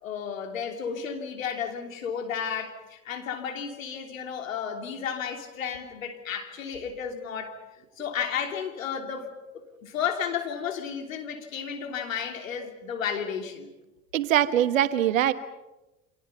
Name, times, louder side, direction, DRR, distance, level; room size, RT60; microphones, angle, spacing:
voice 1, 0.0-7.6 8.0-9.3 9.5-13.7, left 7 dB, 80° left, 4 dB, 3.2 m, -33 dB
voice 2, 14.1-15.3, right 11 dB, 75° right, 12 dB, 1.5 m, -22 dB
29.0 x 26.0 x 5.7 m, 1.0 s
hypercardioid pair, 70°, 40 cm